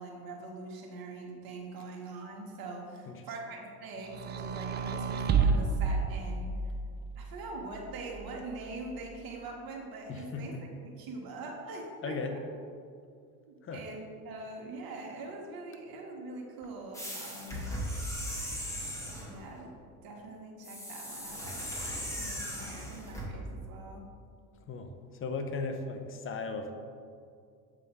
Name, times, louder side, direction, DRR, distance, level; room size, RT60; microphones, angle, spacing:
voice 1, 0.0-6.6 7.2-10.6 11.0-12.4 13.5-17.8 19.2-19.7 20.0-21.6 22.1-24.1, right 2 dB, 55° right, 0 dB, 1.6 m, -43 dB
sound 1, 4.1-6.8 7.7-8.7, right 5 dB, 25° right, 0.4 m, -30 dB
voice 2, 10.1-10.6 12.0-12.3 13.6-13.8 24.7-26.7, left 4 dB, 30° left, 6 dB, 0.8 m, -37 dB
sound 2, 16.9-19.4 20.6-23.3, equal, 5° left, 1.9 m, -38 dB
8.1 x 3.7 x 5.4 m, 2.3 s
hypercardioid pair, 90°, 44 cm